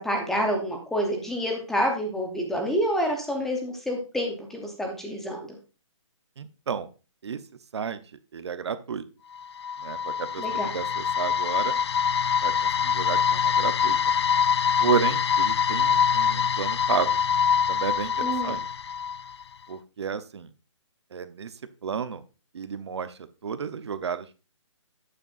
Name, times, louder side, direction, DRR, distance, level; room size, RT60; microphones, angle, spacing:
voice 1, 0.0-5.6 10.4-10.7 18.2-18.5, equal, ahead, 1 dB, 0.8 m, -28 dB
voice 2, 6.4-6.9 7.2-7.4 7.7-8.0 8.3-9.0 9.8-10.4 10.7-11.8 12.4-14.0 14.8-17.1 17.7-18.6 19.7-20.5 21.1-21.5 21.8-22.2 22.5-23.1 23.4-24.4, right 7 dB, 55° right, 12 dB, 0.8 m, -31 dB
sound 1, 9.4-19.4, left 7 dB, 55° left, 0.4 m, -24 dB
11.0 x 8.9 x 2.5 m, 0.32 s
hypercardioid pair, 170°, 16 cm